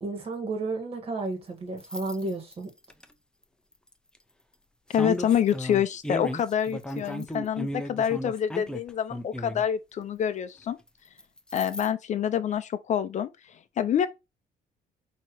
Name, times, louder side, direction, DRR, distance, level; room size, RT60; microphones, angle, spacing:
voice 1, 0.0-2.7, right 3 dB, 35° right, 1.8 m, -32 dB
sound 1, 1.8-3.0 3.9-4.2 4.9-9.6 11.2-11.9, equal, 5° left, 0.6 m, -35 dB
voice 2, 4.9-10.8 11.5-14.1, left 9 dB, 45° left, 0.5 m, -27 dB
5.7 x 2.9 x 3.1 m
cardioid pair, 110°, 17 cm